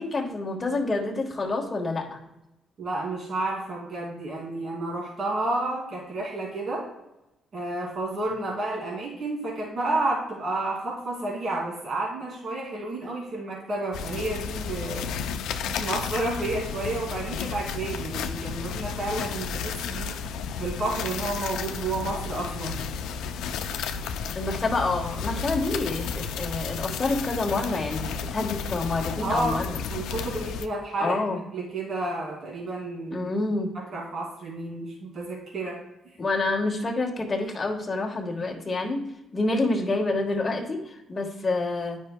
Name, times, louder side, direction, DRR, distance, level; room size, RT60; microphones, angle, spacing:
voice 1, 0.0-2.2 24.3-29.8 31.0-31.4 33.1-33.7 36.2-39.1 39.3-42.0, left 2 dB, 30° left, 0 dB, 1.4 m, -28 dB
voice 2, 2.8-6.8 7.5-15.1 15.7-20.1 20.6-22.8 29.2-29.6 29.9-31.2 31.5-33.2 33.9-35.8 36.0-36.2, right 2 dB, 55° right, -4 dB, 2.4 m, -31 dB
sound 1, 13.9-30.7, left 6 dB, 85° left, 0.4 m, -32 dB
9.6 x 5.4 x 2.2 m, 0.90 s
cardioid pair, 90°, 0 cm